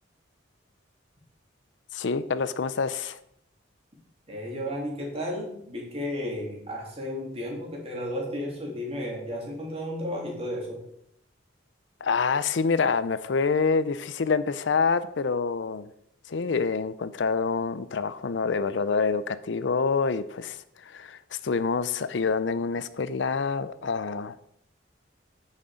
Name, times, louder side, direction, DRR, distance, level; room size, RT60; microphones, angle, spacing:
voice 1, 1.9-3.2 12.0-15.9 16.3-24.4, left 5 dB, 70° left, 14 dB, 0.5 m, -27 dB
voice 2, 4.3-10.8, equal, 30° right, -2 dB, 2.9 m, -33 dB
9.3 x 6.4 x 5.1 m, 0.72 s
head